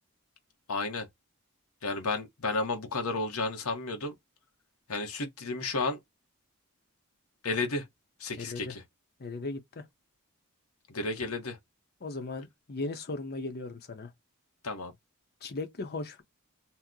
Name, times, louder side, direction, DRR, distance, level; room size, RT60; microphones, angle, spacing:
voice 1, 0.7-1.1 1.8-4.1 4.9-6.0 7.4-7.9 8.2-8.8 10.9-11.6 14.6-14.9, left 3 dB, 75° left, 0.9 m, -32 dB
voice 2, 8.4-8.7 9.2-9.8 12.0-14.1 15.4-16.2, left 3 dB, 45° left, 0.7 m, -37 dB
2.9 x 2.1 x 3.6 m
head